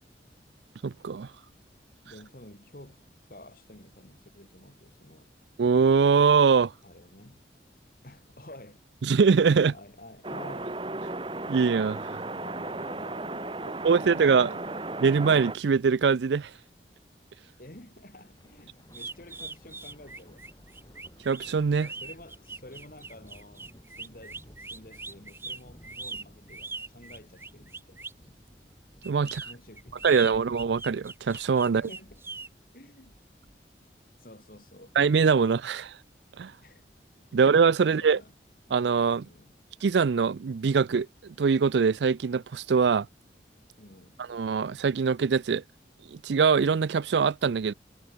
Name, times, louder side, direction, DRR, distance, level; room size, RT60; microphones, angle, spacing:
voice 1, 0.8-1.3 5.6-6.7 9.0-9.7 11.5-12.2 13.8-14.5 15.0-16.5 21.3-21.9 29.0-29.4 30.0-31.8 35.0-36.0 36.4-36.5 37.3-38.2 38.7-39.3 39.8-43.1 44.3-45.6 46.1-47.7, right 5 dB, 80° right, 0.4 m, -23 dB
voice 2, 2.0-3.0 3.3-5.3 6.8-7.4 8.0-8.8 9.7-10.9 12.4-14.9 17.6-20.5 21.8-28.0 29.2-30.5 31.7-32.2 32.7-33.2 34.2-35.0 36.6-36.8 37.3-37.4 37.8-38.3 39.2-39.6 43.8-44.3, left 1 dB, 50° left, 3.6 m, -50 dB
sound 1, 10.2-15.5, right 2 dB, 30° right, 1.4 m, -35 dB
Thunder, 18.2-34.8, equal, 25° left, 5.0 m, -56 dB
sound 2, 18.9-28.2 29.0-32.5, right 4 dB, 15° right, 1.0 m, -41 dB
head